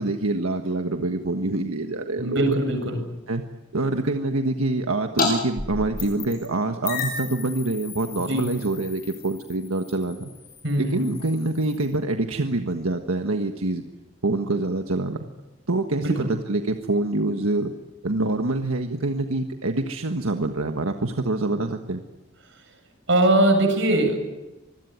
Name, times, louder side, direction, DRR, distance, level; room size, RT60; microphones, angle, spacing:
voice 1, 0.0-2.6 3.3-3.4 3.7-10.3 10.9-13.8 14.2-15.3 15.7-17.7 18.0-22.0, right 2 dB, 85° right, 5 dB, 1.5 m, -25 dB
voice 2, 2.2-3.0 8.2-8.5 10.6-11.0 16.0-16.3 23.1-24.3, right 1 dB, 60° right, 6 dB, 7.5 m, -21 dB
sound 1, 5.2-5.3 5.6-6.5 6.8-11.9, left 4 dB, 40° left, 7.9 m, -33 dB
26.5 x 21.5 x 9.5 m, 1.0 s
head